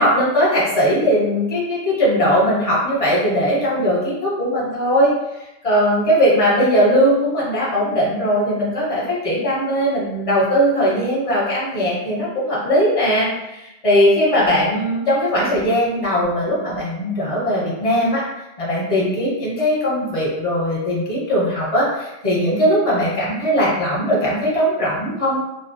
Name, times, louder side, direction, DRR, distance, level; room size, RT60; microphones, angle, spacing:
voice 1, 0.0-5.1 5.6-18.2 18.6-25.5, equal, 35° left, -6 dB, 0.8 m, -19 dB
2.3 x 2.1 x 2.5 m, 0.92 s
omnidirectional pair, 1.2 m